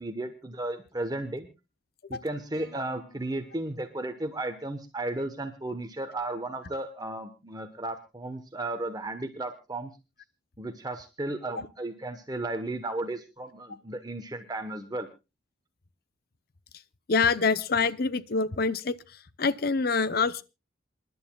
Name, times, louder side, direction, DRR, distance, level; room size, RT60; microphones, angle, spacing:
voice 1, 0.0-1.5 2.1-9.9 10.6-15.1, right 2 dB, 20° right, 1.0 m, -34 dB
sound 1, 2.5-4.9, equal, 20° left, 6.1 m, -57 dB
voice 2, 17.1-19.0 19.4-20.4, left 4 dB, 55° left, 0.6 m, -25 dB
27.5 x 11.0 x 2.3 m
head